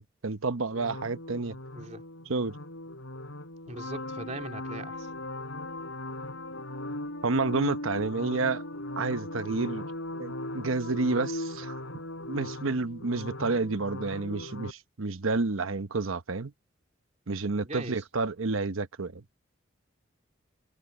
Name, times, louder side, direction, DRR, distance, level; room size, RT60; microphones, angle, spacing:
voice 1, 0.0-1.6 2.3-2.6 7.2-8.6 9.0-9.8 10.2-11.8 12.3-16.5 17.3-19.2, right 3 dB, 90° right, 1.0 m, -30 dB
sound 1, 0.7-14.7, left 1 dB, 80° left, 4.4 m, -38 dB
voice 2, 1.7-2.0 3.7-5.1 17.6-18.0, right 2 dB, 35° right, 3.3 m, -40 dB
head